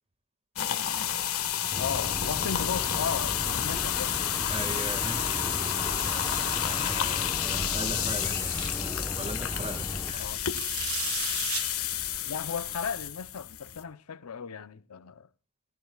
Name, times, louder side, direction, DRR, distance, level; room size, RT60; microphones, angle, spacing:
sound 1, 0.6-13.8, left 11 dB, 70° left, 1.4 m, -30 dB
sound 2, 1.7-10.1, left 1 dB, 15° left, 0.9 m, -37 dB
voice 1, 1.8-4.2 10.1-10.4 12.2-15.3, left 6 dB, 85° left, 0.7 m, -35 dB
sound 3, 4.2-12.9, right 11 dB, 75° right, 1.2 m, -41 dB
voice 2, 4.5-5.4 6.6-8.5 8.8-10.3, right 2 dB, 30° right, 1.7 m, -39 dB
19.0 x 17.5 x 2.3 m
head